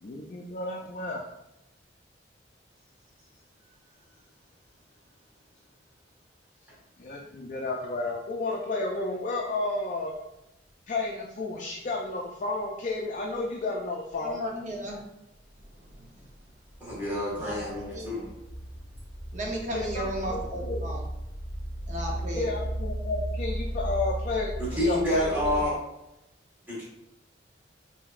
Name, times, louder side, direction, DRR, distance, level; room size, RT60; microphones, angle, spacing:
voice 1, 0.0-1.2 7.0-10.1 10.9-14.4 19.7-20.8 22.3-25.6, left 2 dB, 45° left, -1 dB, 0.4 m, -32 dB
sound 1, 14.1-14.3 14.9-15.0 15.5-16.0 16.3-25.7, right 1 dB, 75° right, 0.9 m, -35 dB
voice 2, 14.2-15.0 15.9-16.1 17.4-18.1 19.3-21.0 21.9-22.5, right 1 dB, 40° right, 0 dB, 0.8 m, -34 dB
voice 3, 16.8-18.3 24.7-25.8 26.7-26.8, left 1 dB, 10° right, -8 dB, 1.5 m, -28 dB
5.0 x 2.8 x 2.4 m, 0.88 s
head